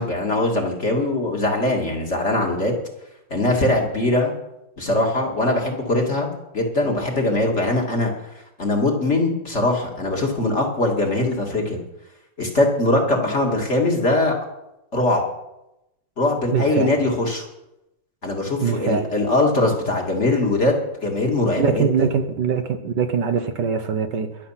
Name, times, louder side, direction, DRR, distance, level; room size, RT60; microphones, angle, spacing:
voice 1, 0.0-2.8 3.3-4.3 4.8-8.1 8.6-11.8 12.4-14.3 14.9-15.2 16.2-17.4 18.2-20.8 21.0-22.1, left 2 dB, 35° left, 2.5 m, -21 dB
voice 2, 16.5-16.9 18.6-19.1 21.5-24.4, right 6 dB, 65° right, 1.5 m, -22 dB
22.5 x 7.7 x 5.8 m
omnidirectional pair, 2.1 m